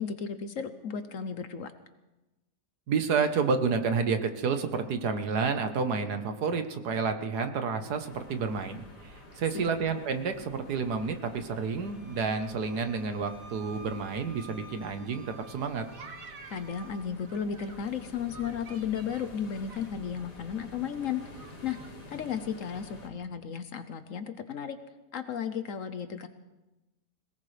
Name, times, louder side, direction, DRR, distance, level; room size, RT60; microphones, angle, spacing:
voice 1, 0.0-1.7 9.5-9.7 16.5-24.8 25.1-26.3, left 7 dB, 60° left, 10 dB, 1.0 m, -34 dB
voice 2, 2.9-15.8, right 5 dB, 75° right, 8 dB, 1.7 m, -30 dB
sound 1, 8.0-23.1, left 1 dB, 90° left, 3.4 m, -50 dB
Wind instrument woodwind instrument, 11.8-17.0, right 2 dB, 5° left, 5.2 m, -52 dB
sound 2, 15.6-17.8 18.3-20.2 20.5-20.6 20.8-21.9 22.2-22.4, right 5 dB, 60° right, 1.5 m, -51 dB
21.5 x 19.0 x 3.3 m, 1.1 s
omnidirectional pair, 1.7 m